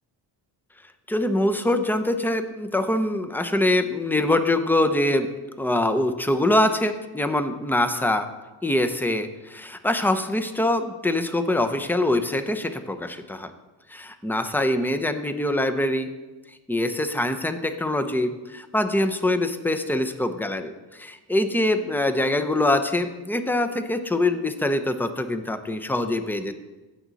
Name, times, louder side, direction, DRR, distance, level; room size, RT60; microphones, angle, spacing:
voice 1, 1.1-5.3 5.6-8.3 8.6-13.5 13.9-16.1 16.7-26.5, left 1 dB, 5° left, 8 dB, 0.8 m, -24 dB
15.5 x 6.1 x 4.1 m, 1.2 s
cardioid pair, 85°, 44 cm